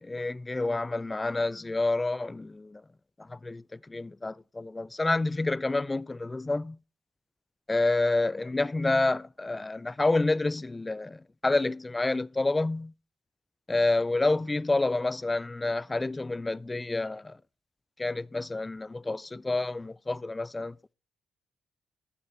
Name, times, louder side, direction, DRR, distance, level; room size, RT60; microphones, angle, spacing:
voice 1, 0.0-2.8 3.2-6.8 7.7-12.9 13.7-17.4 18.0-20.9, left 2 dB, 25° left, 0.4 m, -28 dB
11.5 x 6.7 x 4.1 m
supercardioid pair, 55°, 0 cm